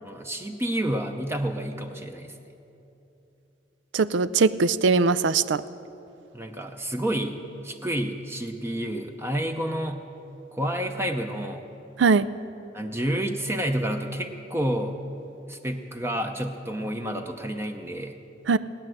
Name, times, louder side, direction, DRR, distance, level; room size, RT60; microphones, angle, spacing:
voice 1, 0.0-2.3 6.3-10.1 10.5-11.7 12.7-15.0 15.5-18.2, right 1 dB, 15° right, 5 dB, 0.7 m, -29 dB
voice 2, 3.9-5.6 12.0-12.3 18.5-18.6, right 4 dB, 85° right, 16 dB, 0.5 m, -21 dB
18.0 x 9.7 x 7.7 m, 2.9 s
head